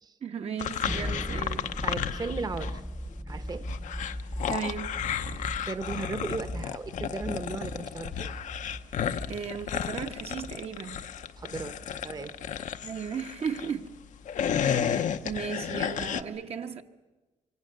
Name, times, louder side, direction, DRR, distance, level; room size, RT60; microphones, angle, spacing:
voice 1, 0.2-1.7 4.5-5.0 9.3-11.1 12.8-13.9 14.6-16.8, right 6 dB, 55° right, 1.1 m, -35 dB
sound 1, 0.6-2.8 3.1-13.7 14.1-16.2, left 8 dB, 80° left, 0.8 m, -33 dB
sound 2, 0.8-12.6, equal, 5° right, 0.7 m, -39 dB
voice 2, 1.8-2.8 3.3-3.6 5.3-8.3 11.4-12.3, right 4 dB, 30° right, 0.9 m, -36 dB
26.0 x 23.5 x 6.7 m
cardioid pair, 125°, 13 cm